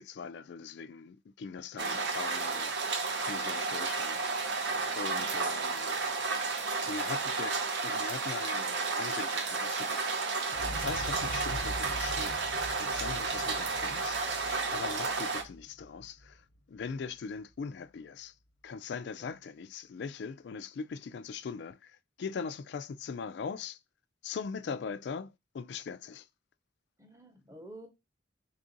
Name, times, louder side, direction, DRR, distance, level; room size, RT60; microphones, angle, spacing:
voice 1, 0.0-6.0 6.5-7.6 7.8-10.0 10.7-14.2 14.7-16.4 16.7-18.3 18.6-23.8 24.2-26.3, left 5 dB, 60° left, 0.3 m, -41 dB
sound 1, 1.8-15.4, right 4 dB, 65° right, 0.7 m, -32 dB
Explosion, 10.5-16.6 16.9-17.0, equal, 80° left, 0.8 m, -43 dB
voice 2, 27.0-27.9, equal, 15° right, 0.8 m, -50 dB
3.6 x 2.5 x 3.8 m
head